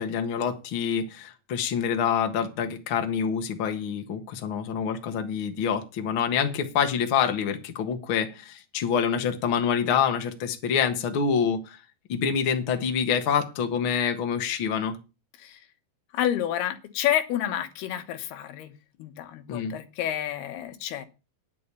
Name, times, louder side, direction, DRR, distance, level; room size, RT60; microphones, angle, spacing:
voice 1, 0.0-11.8 12.1-15.0 19.5-19.7, left 7 dB, 55° left, 6 dB, 1.5 m, -26 dB
voice 2, 16.1-18.7 19.0-21.1, left 11 dB, 85° left, 9 dB, 3.2 m, -29 dB
10.0 x 8.2 x 6.7 m, 0.30 s
omnidirectional pair, 4.4 m